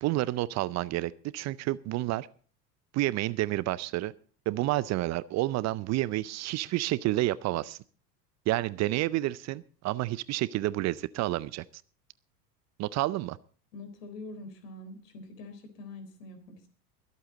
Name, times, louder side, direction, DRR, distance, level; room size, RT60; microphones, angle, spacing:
voice 1, 0.0-2.3 2.9-4.1 4.5-7.8 8.5-11.6 12.8-13.4, right 17 dB, 35° right, 19 dB, 0.5 m, -29 dB
voice 2, 13.7-16.7, left 2 dB, 75° left, 9 dB, 3.9 m, -45 dB
24.0 x 8.4 x 3.9 m, 0.42 s
hypercardioid pair, 85°, 48 cm